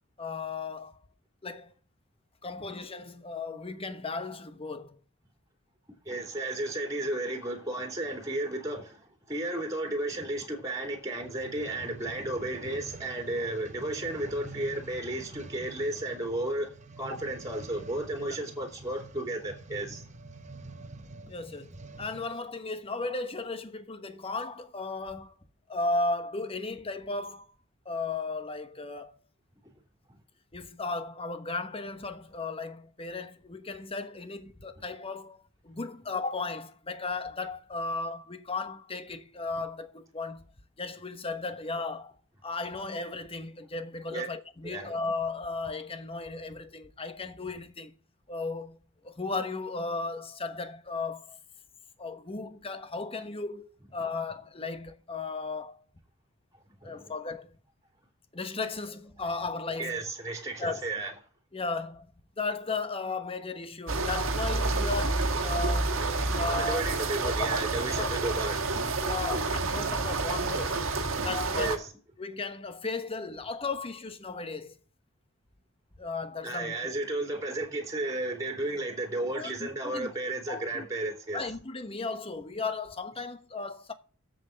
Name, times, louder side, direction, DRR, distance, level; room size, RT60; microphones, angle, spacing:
voice 1, 0.2-1.0 1.4-1.7 2.4-5.0 17.1-17.2 21.3-25.3 25.7-27.5 27.8-29.2 30.5-40.5 40.8-42.1 42.4-47.9 48.3-48.8 49.0-51.4 52.0-55.8 56.8-57.6 58.3-60.0 60.6-60.8 61.5-62.1 62.4-66.1 66.3-66.8 67.2-67.5 68.0-68.2 69.0-70.8 71.2-71.8 72.2-74.8 76.0-76.7 79.3-80.1 80.5-80.9 81.3-83.9, left 3 dB, 25° left, 1.1 m, -35 dB
voice 2, 6.0-16.7 17.0-20.0 29.6-29.7 30.1-30.2 44.1-44.3 44.6-44.9 56.8-57.1 59.8-61.1 66.5-68.9 71.5-71.9 76.4-81.4, right 2 dB, 15° right, 2.8 m, -33 dB
sound 1, 11.2-22.4 23.0-23.1, right 3 dB, 35° right, 0.9 m, -47 dB
sound 2, 63.9-71.8, right 3 dB, 65° right, 1.7 m, -29 dB
8.0 x 7.4 x 6.4 m
head